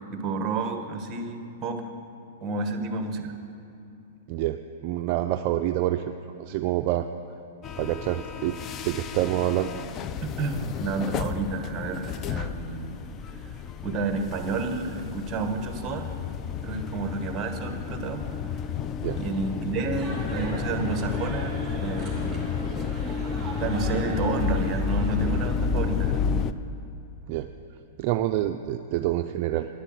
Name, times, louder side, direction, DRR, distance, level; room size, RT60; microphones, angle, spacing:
voice 1, 0.1-1.8 2.4-3.3 10.2-13.0 13.3-16.1 16.6-18.3 19.2-22.5 22.9-26.2, right 4 dB, 25° right, 6 dB, 1.2 m, -31 dB
voice 2, 4.3-6.0 6.4-7.1 7.8-8.6 8.8-9.8 19.0-19.2 27.3-27.5 28.0-29.7, right 13 dB, 45° right, 7 dB, 0.4 m, -27 dB
sound 1, 7.6-26.5, left 6 dB, 30° left, 0.4 m, -31 dB
sound 2, 20.0-25.5, right 1 dB, 5° right, 2.8 m, -39 dB
10.5 x 8.1 x 7.7 m, 2.7 s
hypercardioid pair, 140°, 0 cm